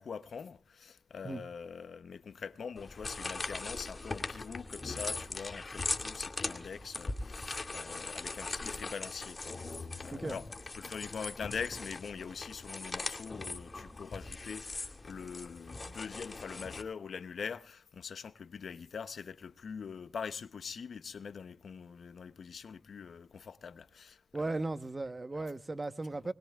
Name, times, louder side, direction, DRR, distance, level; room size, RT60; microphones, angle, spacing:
voice 1, 0.0-10.5 10.8-24.6 25.3-25.5, left 6 dB, 85° left, 0.7 m, -43 dB
sound 1, 2.8-16.8, left 3 dB, 45° left, 2.2 m, -40 dB
voice 2, 24.3-26.3, right 2 dB, 40° right, 1.1 m, -36 dB
24.5 x 21.0 x 2.4 m
cardioid pair, 50°, 0 cm